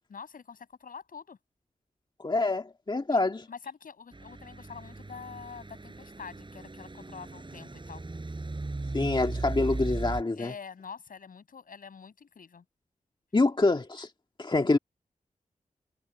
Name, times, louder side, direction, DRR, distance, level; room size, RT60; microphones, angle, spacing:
voice 1, 0.1-1.4 3.1-3.2 3.5-8.0 10.4-12.6, left 6 dB, 80° left, 6.4 m, -45 dB
voice 2, 2.2-3.5 8.9-10.5 13.3-14.1 14.4-14.8, left 2 dB, 35° left, 2.0 m, -26 dB
Truck / Idling, 4.1-10.2, right 2 dB, 35° right, 7.5 m, -37 dB
cardioid pair, 55°, 14 cm